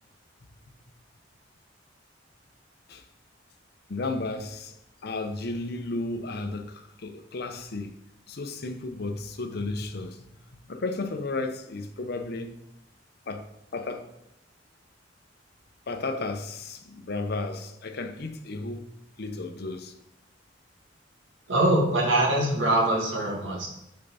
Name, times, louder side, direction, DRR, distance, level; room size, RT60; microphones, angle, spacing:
voice 1, 3.9-4.8 5.0-7.9 8.3-10.3 10.5-12.6 13.3-13.5 13.7-14.1 15.9-18.9 19.2-19.9, left 2 dB, 55° left, 0.7 m, -33 dB
voice 2, 21.5-23.7, right 1 dB, 85° right, 1.8 m, -23 dB
6.9 x 4.4 x 4.0 m
head